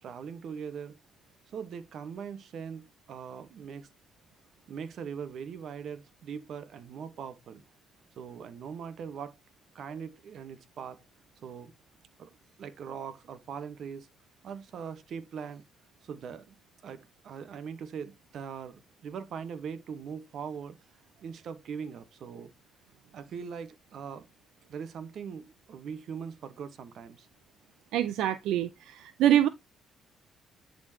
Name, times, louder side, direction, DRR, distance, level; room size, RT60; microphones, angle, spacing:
voice 1, 0.0-1.0 1.5-3.9 4.7-7.6 8.2-9.4 9.7-11.0 11.4-11.7 12.2-12.3 12.6-14.1 14.4-15.6 16.0-16.5 16.8-20.8 21.2-22.5 23.1-24.3 24.7-27.3, right 7 dB, 65° right, 1.2 m, -41 dB
voice 2, 27.9-29.5, right 11 dB, 90° right, 0.5 m, -25 dB
10.5 x 4.4 x 2.8 m
cardioid pair, 90°, 0 cm